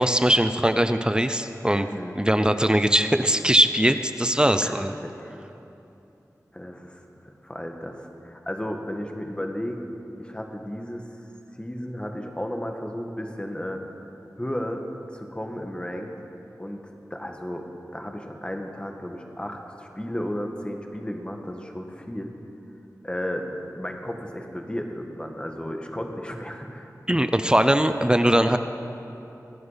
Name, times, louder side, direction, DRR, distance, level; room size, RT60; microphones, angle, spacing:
voice 1, 0.0-1.9 2.1-4.9 27.1-28.6, right 1 dB, 15° right, 9 dB, 0.6 m, -21 dB
voice 2, 1.8-2.1 4.5-5.4 6.5-9.8 10.2-11.1 11.6-13.8 14.4-14.9 15.1-16.1 16.6-16.8 17.1-17.6 17.9-22.3 23.0-23.5 23.7-26.9, equal, 15° left, 3 dB, 1.6 m, -34 dB
23.0 x 9.4 x 5.7 m, 2.9 s
wide cardioid pair, 55°, 6 cm